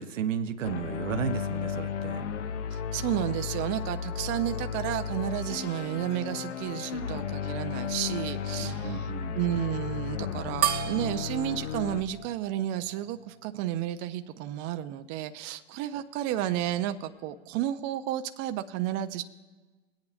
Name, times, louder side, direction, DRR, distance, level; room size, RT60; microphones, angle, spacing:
voice 1, 0.0-2.2 8.6-9.4, right 7 dB, 80° right, 8 dB, 0.9 m, -33 dB
sound 1, 0.6-12.0, left 7 dB, 70° left, 0.9 m, -34 dB
voice 2, 2.7-19.2, right 12 dB, 35° right, 9 dB, 0.5 m, -32 dB
sound 2, 10.6-13.4, right 9 dB, 65° right, 1.1 m, -33 dB
21.0 x 8.8 x 2.4 m, 1.3 s
hypercardioid pair, 110°, 37 cm